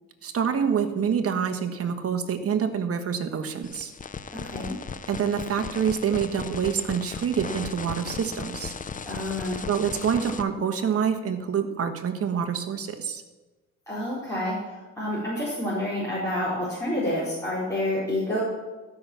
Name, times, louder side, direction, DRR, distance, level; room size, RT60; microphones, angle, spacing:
voice 1, 0.2-3.9 5.1-8.7 9.7-13.2, right 7 dB, 50° right, 7 dB, 1.3 m, -26 dB
sound 1, 3.6-10.4, left 5 dB, 25° left, 0.6 m, -36 dB
voice 2, 4.3-4.7 9.0-9.6 13.9-18.4, left 1 dB, 10° left, -10 dB, 4.2 m, -29 dB
13.0 x 5.9 x 7.0 m, 1.2 s
cardioid pair, 90°, 30 cm